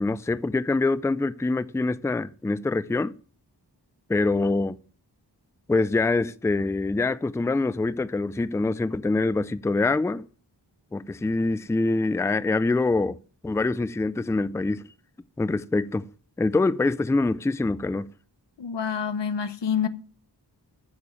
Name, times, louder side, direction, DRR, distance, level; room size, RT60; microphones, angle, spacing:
voice 1, 0.0-3.1 4.1-4.8 5.7-10.3 10.9-13.2 13.4-14.9 15.4-16.1 16.4-18.1, left 3 dB, 5° left, 0.4 m, -25 dB
voice 2, 18.6-19.9, left 7 dB, 90° left, 0.9 m, -27 dB
8.5 x 6.7 x 7.2 m
wide cardioid pair, 85°, 42 cm